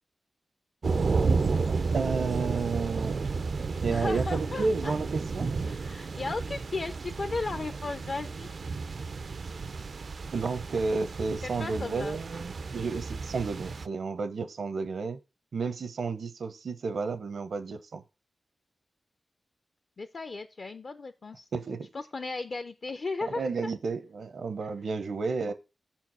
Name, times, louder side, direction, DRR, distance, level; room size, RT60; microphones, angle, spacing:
sound 1, 0.8-13.9, right 4 dB, 55° right, 0.4 m, -32 dB
voice 1, 1.9-3.2 3.8-5.5 10.3-15.2 15.5-18.0 21.5-21.9 23.2-25.5, right 4 dB, 75° right, 0.8 m, -31 dB
voice 2, 3.9-4.9 5.7-8.6 11.4-12.2 20.0-21.5 21.9-23.7, left 3 dB, 50° left, 0.6 m, -35 dB
7.0 x 4.5 x 6.1 m
wide cardioid pair, 130°, 0 cm